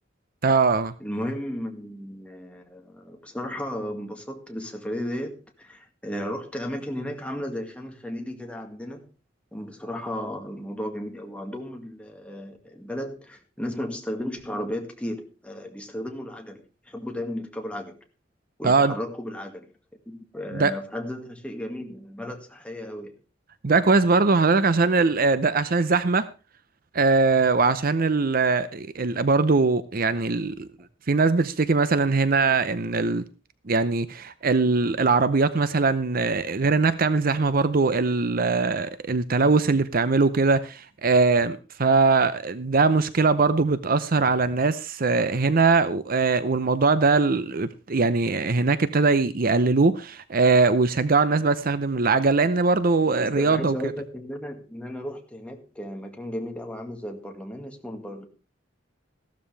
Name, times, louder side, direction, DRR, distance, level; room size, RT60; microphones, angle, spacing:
voice 1, 0.4-0.9 18.6-18.9 20.5-20.7 23.6-26.3 26.9-30.7 31.1-33.2 33.7-53.7, right 4 dB, 50° right, 0.7 m, -21 dB
voice 2, 1.0-9.1 9.5-18.0 18.6-19.7 20.1-23.2 53.2-58.3, equal, 5° left, 2.0 m, -34 dB
14.5 x 12.5 x 3.4 m
head